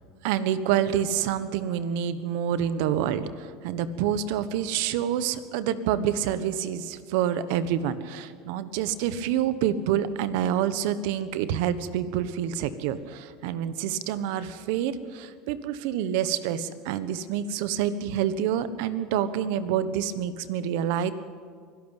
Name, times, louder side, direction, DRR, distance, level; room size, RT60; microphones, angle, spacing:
voice 1, 0.2-21.1, right 9 dB, 75° right, 13 dB, 1.3 m, -27 dB
24.0 x 12.0 x 9.1 m, 2.1 s
supercardioid pair, 110°, 0 cm